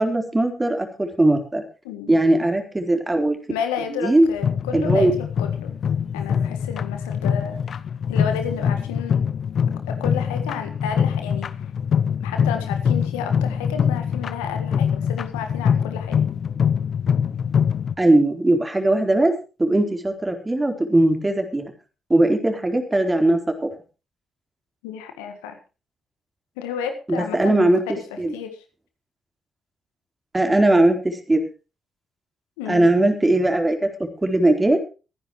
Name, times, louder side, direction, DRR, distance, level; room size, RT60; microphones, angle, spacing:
voice 1, 0.0-1.6 2.1-3.4 4.0-4.3 4.7-5.1 18.0-19.3 19.6-21.7 22.1-23.7 27.1-27.8 28.2-28.3 30.3-31.4 32.7-33.8 34.2-34.8, right 1 dB, 20° right, 5 dB, 4.1 m, -19 dB
voice 2, 1.8-2.2 3.5-5.7 6.1-7.6 8.1-9.2 9.9-11.5 12.2-16.2 24.8-25.6 26.6-28.6 32.6-32.9, left 7 dB, 80° left, 6 dB, 1.7 m, -32 dB
sound 1, 4.4-17.9, left 7 dB, 55° left, 0.7 m, -23 dB
23.5 x 10.0 x 3.1 m, 0.32 s
hypercardioid pair, 40°, 0 cm